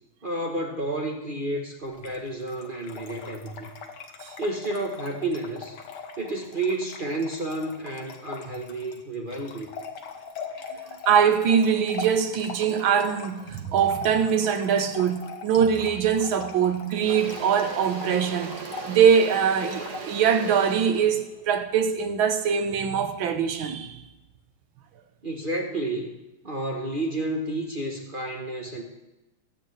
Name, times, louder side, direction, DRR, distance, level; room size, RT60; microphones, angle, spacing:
voice 1, 0.2-3.7 4.4-5.8 6.2-9.7 25.2-26.2 26.4-28.8, right 2 dB, 35° right, 0.9 m, -31 dB
Trickle dribble / Fill (with liquid), 1.9-20.4, left 5 dB, 60° left, 1.6 m, -41 dB
voice 2, 10.9-18.5 18.9-24.0, right 7 dB, 70° right, 1.7 m, -23 dB
Engine / Drill, 16.2-16.3 16.6-22.8, right 5 dB, 55° right, 1.5 m, -39 dB
21.5 x 8.7 x 3.3 m
omnidirectional pair, 2.3 m